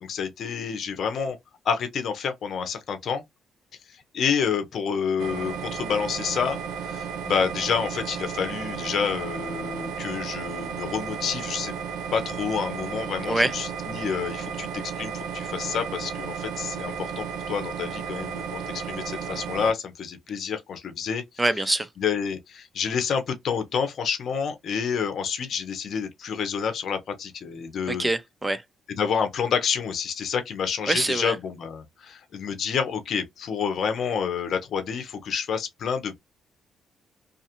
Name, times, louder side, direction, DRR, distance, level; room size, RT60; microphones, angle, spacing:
voice 1, 0.0-1.4 1.6-3.2 3.9-11.7 12.1-21.2 22.0-28.1 28.9-36.2, left 6 dB, 60° left, 0.8 m, -28 dB
sound 1, 5.2-19.7, right 7 dB, 85° right, 0.6 m, -33 dB
voice 2, 21.4-21.9 27.9-28.6 30.9-31.4, right 2 dB, 10° right, 0.5 m, -24 dB
2.4 x 2.4 x 2.8 m
cardioid pair, 90°, 0 cm